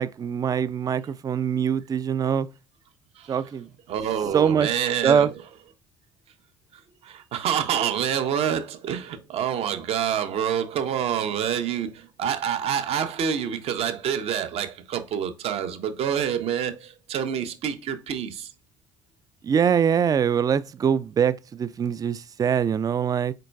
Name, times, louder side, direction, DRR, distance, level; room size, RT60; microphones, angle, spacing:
voice 1, 0.0-2.5 3.3-3.7 4.3-4.7 5.0-5.3 19.4-23.3, right 7 dB, 30° right, 0.4 m, -23 dB
voice 2, 3.9-5.3 7.0-18.5, right 8 dB, 55° right, 0.8 m, -27 dB
4.3 x 3.9 x 2.2 m
hypercardioid pair, 60°, 12 cm